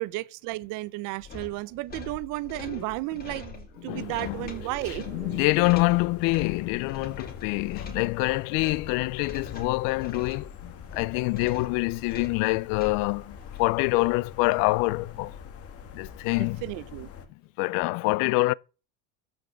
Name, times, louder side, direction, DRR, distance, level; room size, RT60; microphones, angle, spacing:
voice 1, 0.0-5.0 16.6-17.1, right 20 dB, 60° right, 0.6 m, -33 dB
sound 1, 1.2-13.7, left 5 dB, 25° left, 2.2 m, -43 dB
sound 2, 3.6-7.4, right 9 dB, 20° right, 0.5 m, -48 dB
voice 2, 3.8-4.5 5.1-15.3 15.9-16.6 17.6-18.5, left 23 dB, 70° left, 0.5 m, -26 dB
sound 3, 3.9-17.3, left 7 dB, 40° left, 1.7 m, -44 dB
13.5 x 5.4 x 7.0 m
cardioid pair, 155°, 35 cm